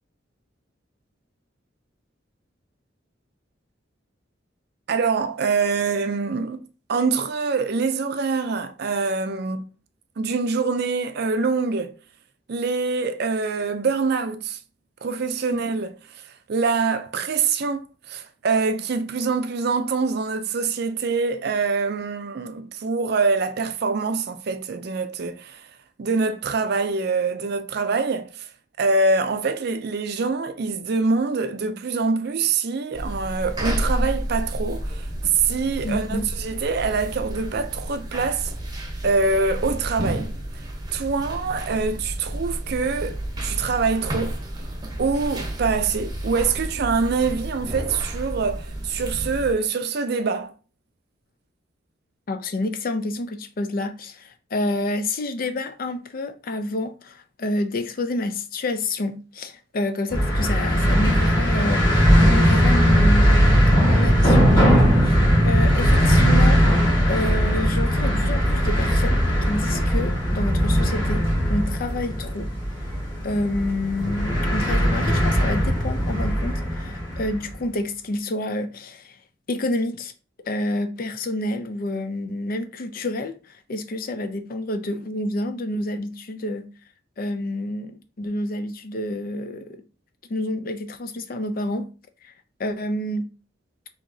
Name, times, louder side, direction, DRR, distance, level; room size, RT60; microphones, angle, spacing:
voice 1, 4.9-9.6 10.2-11.9 12.5-14.6 15.0-15.9 16.5-25.7 26.0-28.5 28.8-35.1 35.3-38.5 39.0-40.4 40.9-44.4 45.0-50.5, right 4 dB, 55° right, 0.5 m, -24 dB
sound 1, 32.9-49.5, equal, 20° right, 0.9 m, -31 dB
voice 2, 35.8-36.3 52.3-63.4 63.8-65.2 65.4-66.6 67.1-72.5 73.2-79.2 79.5-80.1 80.5-83.3 83.7-86.7 87.2-89.8 90.3-91.9 92.2-92.3 92.6-93.3, left 1 dB, 50° left, 0.5 m, -28 dB
sound 2, 60.1-77.4, equal, 25° left, 2.0 m, -19 dB
4.8 x 2.9 x 2.7 m
head